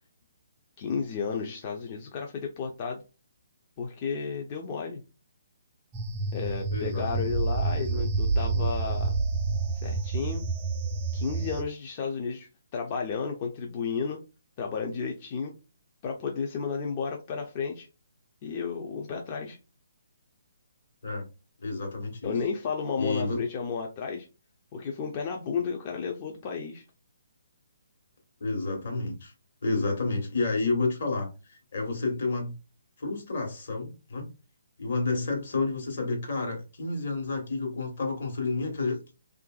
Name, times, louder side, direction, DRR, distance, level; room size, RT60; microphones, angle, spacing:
voice 1, 0.8-3.0 3.8-5.0 6.3-9.2 9.8-10.4 11.1-14.2 14.6-15.5 16.0-17.9 18.4-19.6 22.2-24.3 24.7-26.8, left 5 dB, 35° left, 2 dB, 0.4 m, -32 dB
sound 1, 5.9-11.6, right 3 dB, 25° right, 0.4 m, -28 dB
voice 2, 6.7-7.3 7.7-8.0 21.0-21.3 21.6-22.4 23.0-23.4 28.4-29.3 29.6-32.5 33.0-34.3 34.8-39.0, left 3 dB, 60° left, 2 dB, 1.2 m, -30 dB
2.9 x 2.5 x 2.3 m, 0.30 s
hypercardioid pair, 150°, 0 cm